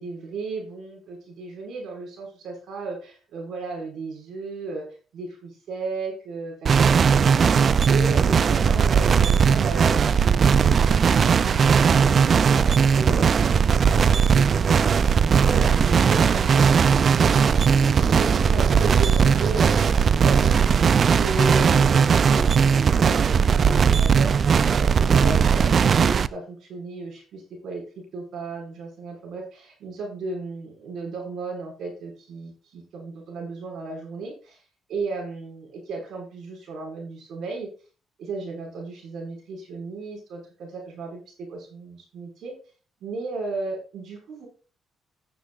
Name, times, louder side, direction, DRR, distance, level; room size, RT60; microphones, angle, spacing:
voice 1, 0.0-4.8 5.1-11.2 11.5-12.4 12.6-14.0 14.3-15.1 15.4-17.4 18.2-34.6 34.9-37.7 38.2-42.5 43.0-44.5, right 3 dB, 70° right, 0 dB, 5.6 m, -35 dB
sound 1, 6.7-21.3, right 2 dB, 20° right, 4.5 m, -38 dB
sound 2, 6.7-26.3, right 6 dB, 50° right, 0.4 m, -18 dB
14.0 x 10.0 x 2.5 m, 0.36 s
cardioid pair, 90°, 0 cm